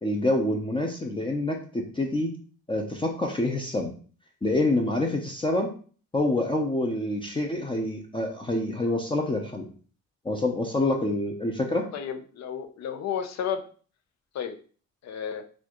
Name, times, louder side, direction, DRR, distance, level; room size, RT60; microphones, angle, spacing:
voice 1, 0.0-2.3 2.7-3.9 4.4-5.7 6.1-9.7 10.2-11.9, left 1 dB, 15° left, 1 dB, 0.6 m, -27 dB
voice 2, 11.9-13.6 14.3-14.6 15.0-15.4, left 8 dB, 60° left, 7 dB, 0.6 m, -32 dB
4.2 x 2.4 x 2.9 m, 0.41 s
cardioid pair, 90°, 30 cm